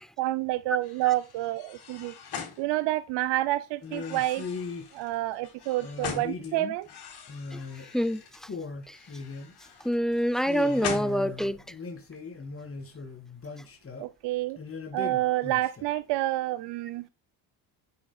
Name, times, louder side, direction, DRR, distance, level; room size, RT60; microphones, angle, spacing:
voice 1, 0.2-2.1 2.6-4.5 4.9-6.9 14.0-14.6 14.9-17.1, right 16 dB, 70° right, 0.6 m, -28 dB
sound 1, 0.8-3.3 3.8-6.5 6.8-8.4 8.8-11.7, left 7 dB, 60° left, 3.9 m, -42 dB
sound 2, 3.8-4.9 5.8-6.9 7.3-7.9 8.1-8.2 8.4-9.7 10.4-14.1 14.6-15.9, left 4 dB, 30° left, 2.4 m, -39 dB
voice 2, 9.8-11.6, equal, ahead, 0.5 m, -26 dB
8.5 x 6.8 x 2.3 m
supercardioid pair, 75°, 44 cm